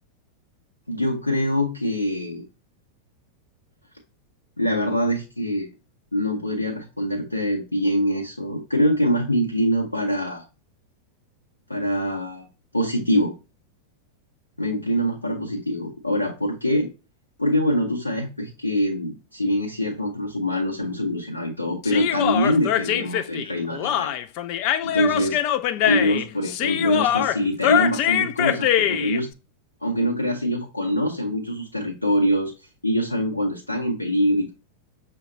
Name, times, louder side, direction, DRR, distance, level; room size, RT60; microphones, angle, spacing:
voice 1, 0.9-2.4 4.6-5.7 6.1-10.4 11.7-12.4 12.7-13.3 14.6-16.9 17.4-24.1 24.8-25.4 25.8-29.3 29.8-32.5 32.8-34.5, equal, 85° left, -2 dB, 0.7 m, -24 dB
Human voice, 21.8-29.2, left 11 dB, 45° left, 0.3 m, -23 dB
6.3 x 2.2 x 3.7 m, 0.29 s
figure-of-eight pair, 90°, 0 cm